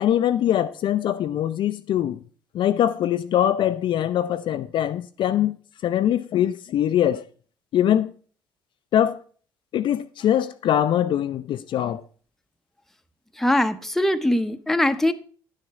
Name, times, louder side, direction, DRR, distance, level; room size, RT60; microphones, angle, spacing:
voice 1, 0.0-2.2 2.5-5.6 5.8-7.2 7.7-8.1 8.9-9.2 9.7-12.0, left 11 dB, 50° left, 0.5 m, -22 dB
voice 2, 13.4-15.1, left 1 dB, 5° left, 0.7 m, -21 dB
10.0 x 6.5 x 4.8 m
figure-of-eight pair, 50°, 11 cm